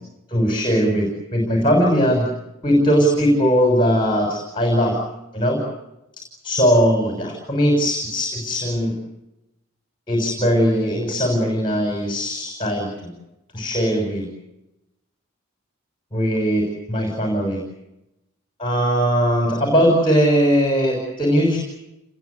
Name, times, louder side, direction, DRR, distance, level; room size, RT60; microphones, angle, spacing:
voice 1, 0.3-2.2 2.6-4.9 5.3-5.6 6.4-8.9 10.1-13.1 13.5-14.3 16.1-17.6 18.6-21.6, equal, 25° left, 1 dB, 6.1 m, -19 dB
29.0 x 21.0 x 8.2 m, 0.92 s
head